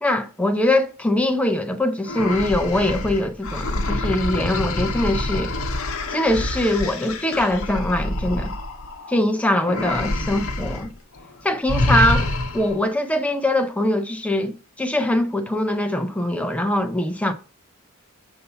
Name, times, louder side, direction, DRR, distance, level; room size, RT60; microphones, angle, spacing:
voice 1, 0.0-5.5 6.1-8.5 9.1-10.9 11.5-12.3 12.5-17.3, left 1 dB, 5° left, 0.5 m, -22 dB
sound 1, 2.0-9.2 9.6-10.9 11.1-11.3 11.7-12.8, left 2 dB, 65° left, 0.8 m, -26 dB
6.8 x 2.7 x 5.5 m
head